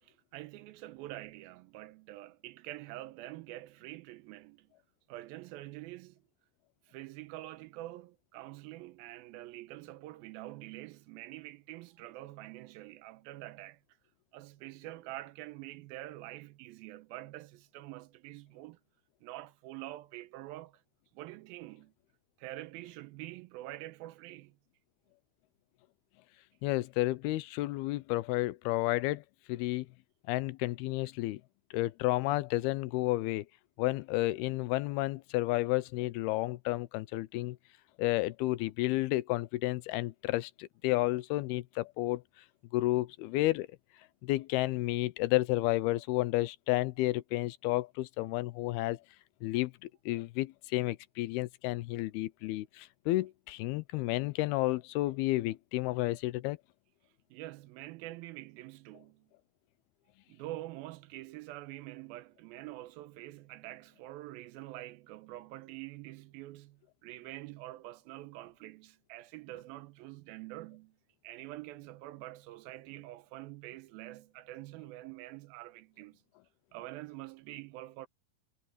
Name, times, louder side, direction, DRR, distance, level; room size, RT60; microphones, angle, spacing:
voice 1, 0.0-4.7 5.1-6.2 6.9-13.8 14.3-18.8 19.2-20.8 21.1-21.9 22.4-24.6 57.3-59.3 60.3-71.0 71.2-76.2 76.7-78.1, right 16 dB, 80° right, 2.4 m, -46 dB
voice 2, 26.6-29.2 29.5-29.9 30.3-31.4 31.7-33.5 33.8-37.6 38.0-42.2 42.7-43.7 44.2-49.0 49.4-56.6, left 18 dB, 90° left, 2.6 m, -31 dB
omnidirectional pair, 4.5 m